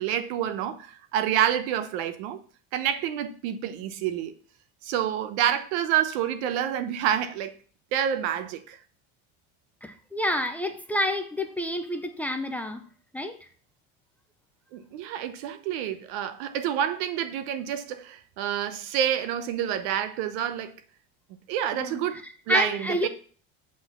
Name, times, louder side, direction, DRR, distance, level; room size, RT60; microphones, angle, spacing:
voice 1, 0.0-2.4 2.7-4.3 4.8-7.6 7.9-8.8 14.7-20.8 21.5-22.2 22.5-23.1, right 10 dB, 80° right, 1.0 m, -28 dB
voice 2, 9.8-12.8 13.1-13.4 21.8-23.1, equal, 5° left, 0.5 m, -29 dB
7.9 x 4.0 x 6.8 m
cardioid pair, 165°, 32 cm